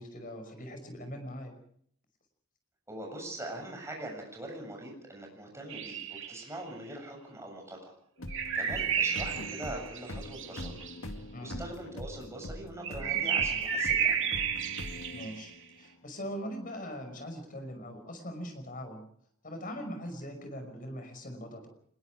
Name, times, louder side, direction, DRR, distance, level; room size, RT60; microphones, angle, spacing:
voice 1, 0.0-1.5 11.3-11.6 15.1-19.0 19.4-21.7, equal, 45° left, 6 dB, 5.7 m, -41 dB
voice 2, 2.9-7.9 8.5-10.7 11.4-14.3, right 1 dB, 15° right, 1 dB, 7.3 m, -42 dB
sound 1, 5.7-6.4 8.3-10.9 12.8-15.5, right 7 dB, 65° right, 2.7 m, -32 dB
sound 2, 8.2-15.8, left 1 dB, 80° left, 2.1 m, -43 dB
26.0 x 21.0 x 4.9 m, 0.63 s
head